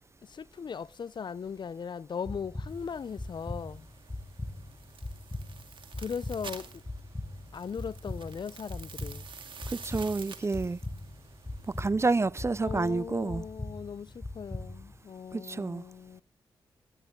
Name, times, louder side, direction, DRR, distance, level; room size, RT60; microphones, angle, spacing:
voice 1, 0.2-3.9 6.0-6.8 7.5-9.3 12.6-16.2, left 6 dB, 55° left, 0.5 m, -38 dB
sound 1, 2.2-15.0, left 2 dB, 25° left, 1.8 m, -41 dB
sound 2, 2.7-11.9, right 6 dB, 60° right, 2.2 m, -49 dB
voice 2, 9.7-10.8 11.8-13.4 15.3-15.8, right 3 dB, 30° right, 0.5 m, -29 dB
16.5 x 12.5 x 3.7 m
supercardioid pair, 45°, 10 cm